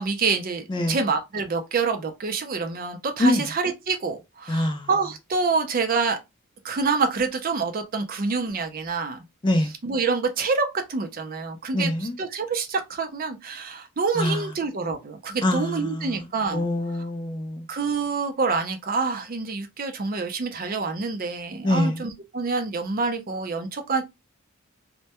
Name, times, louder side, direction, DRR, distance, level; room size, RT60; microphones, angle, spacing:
voice 1, 0.0-6.2 6.6-9.2 9.8-16.7 17.7-24.0, right 4 dB, 45° right, 0.5 m, -27 dB
voice 2, 4.5-4.9 9.4-9.7 11.7-12.1 14.2-14.5 15.4-16.2 16.5-17.6 21.6-22.0, left 1 dB, 20° left, 0.3 m, -24 dB
2.2 x 2.1 x 2.8 m
head